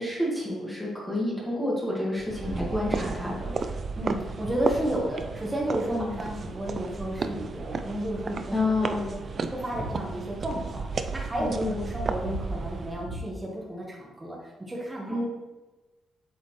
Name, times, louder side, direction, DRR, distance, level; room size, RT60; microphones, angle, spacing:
voice 1, 0.0-3.5 5.9-6.1 8.5-9.1 11.4-11.8 15.1-15.2, left 1 dB, 5° left, -5 dB, 1.8 m, -29 dB
sound 1, 2.2-13.1, right 4 dB, 35° right, 0.4 m, -34 dB
voice 2, 3.9-9.2 9.5-15.2, right 1 dB, 10° right, -3 dB, 1.2 m, -32 dB
sound 2, 9.1-13.2, right 1 dB, 60° right, 2.1 m, -42 dB
8.1 x 7.0 x 3.2 m, 1.1 s
cardioid pair, 160°, 0 cm